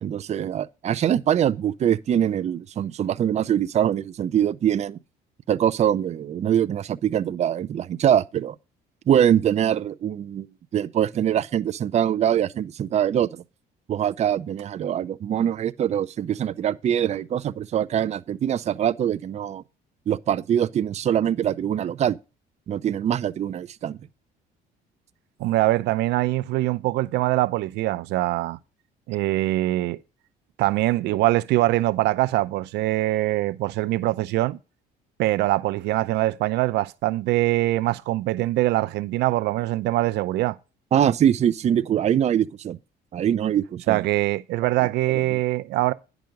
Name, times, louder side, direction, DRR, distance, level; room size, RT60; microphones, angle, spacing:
voice 1, 0.0-5.0 5.5-8.6 9.1-10.5 10.7-13.4 13.9-19.6 20.1-22.2 22.7-24.0 40.9-42.8 43.1-44.1 45.3-45.4, right 10 dB, 40° right, 0.5 m, -23 dB
voice 2, 25.4-28.6 29.1-30.0 30.6-34.6 35.2-40.6 43.9-45.9, right 17 dB, 85° right, 0.6 m, -23 dB
10.5 x 6.0 x 5.1 m
cardioid pair, 110°, 17 cm